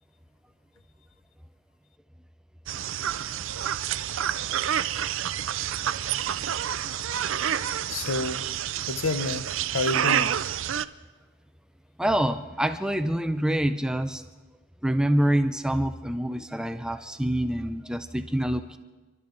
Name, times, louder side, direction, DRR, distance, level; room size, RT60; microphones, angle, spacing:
sound 1, 2.7-10.8, right 10 dB, 60° right, 0.4 m, -28 dB
voice 1, 7.9-8.4 8.9-10.3, left 3 dB, 70° left, 12 dB, 0.8 m, -29 dB
voice 2, 12.0-14.2 14.8-18.8, right 1 dB, 5° right, 10 dB, 0.4 m, -26 dB
28.5 x 12.5 x 3.9 m, 1.3 s
head